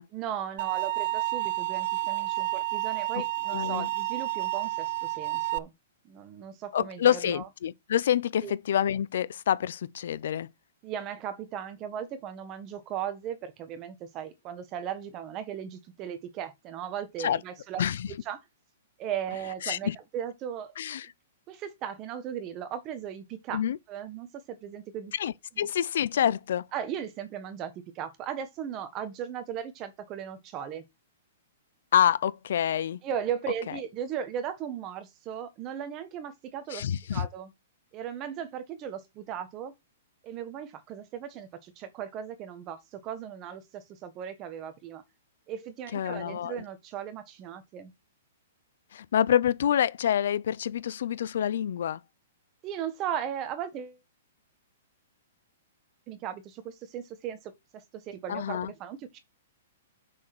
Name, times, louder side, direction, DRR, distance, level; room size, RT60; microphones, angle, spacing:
voice 1, 0.1-5.7 6.0-7.5 8.4-8.5 10.8-17.8 18.1-18.4 19.0-20.7 21.5-23.6 23.9-25.1 26.7-30.8 33.0-37.5 37.9-39.7 40.2-45.0 45.5-47.9 52.6-54.0 56.1-59.2, right 9 dB, 30° right, 1.5 m, -37 dB
sound 1, 0.6-5.6, right 19 dB, 50° right, 0.6 m, -30 dB
voice 2, 3.5-3.9 6.7-10.5 17.2-17.4 17.8-18.1 19.6-19.9 20.8-21.1 23.5-23.8 25.2-26.6 31.9-33.0 36.7-37.3 45.9-46.6 48.9-52.0 58.3-58.7, left 10 dB, 65° left, 0.6 m, -27 dB
6.3 x 6.0 x 6.1 m
hypercardioid pair, 150°, 0 cm